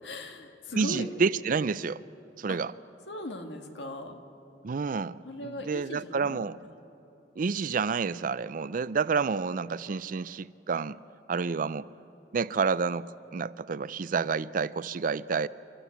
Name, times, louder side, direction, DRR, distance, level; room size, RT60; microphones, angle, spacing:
voice 1, 0.0-1.1 2.5-2.6 3.1-4.2 5.3-6.6, left 1 dB, 85° left, 5 dB, 1.8 m, -39 dB
voice 2, 0.7-2.0 2.4-2.7 4.6-6.6 7.4-11.0 11.3-11.9 12.3-15.5, right 5 dB, 50° right, 18 dB, 0.4 m, -29 dB
28.5 x 13.0 x 8.4 m, 2.9 s
head